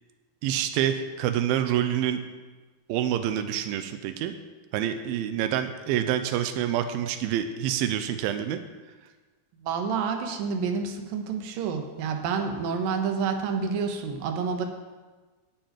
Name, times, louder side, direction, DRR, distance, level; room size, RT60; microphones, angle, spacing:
voice 1, 0.4-2.2 2.9-4.3 4.7-8.6, right 10 dB, 90° right, 9 dB, 2.1 m, -27 dB
voice 2, 9.6-14.7, right 5 dB, 70° right, 5 dB, 2.5 m, -29 dB
11.5 x 5.5 x 8.9 m, 1.3 s
omnidirectional pair, 4.8 m